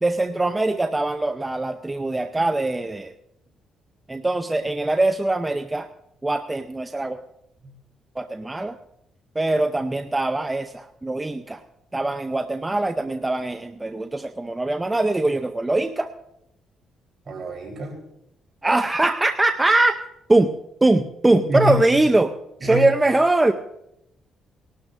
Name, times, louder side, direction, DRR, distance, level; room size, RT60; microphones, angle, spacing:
voice 1, 0.0-3.1 4.1-5.9 6.2-7.2 8.2-8.8 9.4-11.6 11.9-16.1 18.6-20.0 20.3-20.5 20.8-22.3 22.6-23.5, right 2 dB, 15° right, 7 dB, 0.6 m, -22 dB
voice 2, 17.3-17.9 21.5-21.7 22.6-22.8, equal, 50° right, 1 dB, 3.9 m, -26 dB
19.5 x 12.5 x 2.6 m, 0.81 s
cardioid pair, 90°, 0 cm